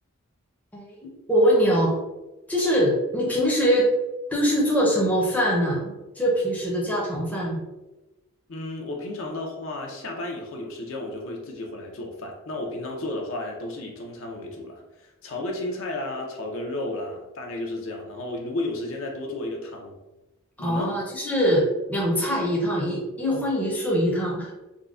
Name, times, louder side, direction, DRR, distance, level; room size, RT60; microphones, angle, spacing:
voice 1, 1.3-1.9 2.5-3.9 4.3-7.6 20.6-24.5, equal, 5° left, -4 dB, 0.5 m, -23 dB
voice 2, 8.5-20.0 20.6-20.9, left 2 dB, 65° left, 1 dB, 0.6 m, -33 dB
3.7 x 2.1 x 2.3 m, 1.0 s
head